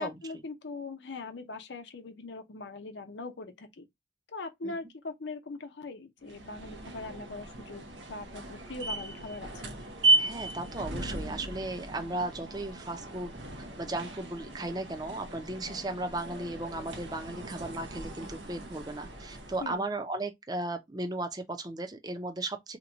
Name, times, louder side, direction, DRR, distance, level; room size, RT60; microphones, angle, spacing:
voice 1, 0.0-3.9 4.3-9.8 19.6-19.9, left 3 dB, 80° left, 0.6 m, -41 dB
sound 1, 6.3-19.8, right 2 dB, 90° right, 0.8 m, -35 dB
voice 2, 10.2-13.4 13.8-22.8, right 2 dB, 20° right, 0.5 m, -36 dB
2.9 x 2.2 x 3.8 m
head